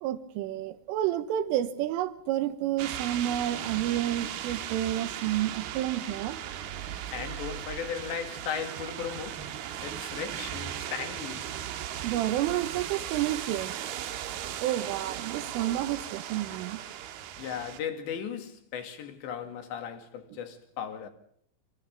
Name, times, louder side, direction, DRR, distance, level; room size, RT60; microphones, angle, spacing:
voice 1, 0.0-6.4 12.0-13.8 14.6-16.8, right 12 dB, 85° right, 3.8 m, -30 dB
sound 1, 2.8-17.8, right 10 dB, 65° right, 2.7 m, -37 dB
voice 2, 7.1-9.4 9.8-11.5 17.4-21.1, left 8 dB, 65° left, 4.5 m, -36 dB
29.0 x 27.0 x 3.7 m
omnidirectional pair, 5.8 m